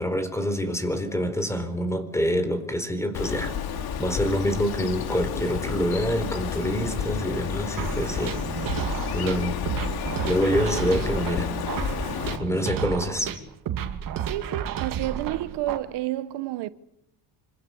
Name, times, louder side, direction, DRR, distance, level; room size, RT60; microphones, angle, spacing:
voice 1, 0.0-3.5 4.0-8.4 9.1-9.6 10.2-11.5 12.4-13.3, equal, 5° left, 4.2 m, -26 dB
Bird, 3.1-12.4, left 7 dB, 65° left, 2.9 m, -31 dB
sound 1, 7.8-15.8, right 9 dB, 55° right, 2.5 m, -32 dB
voice 2, 14.2-16.7, right 15 dB, 85° right, 1.1 m, -30 dB
26.5 x 26.0 x 7.1 m
cardioid pair, 140°, 40 cm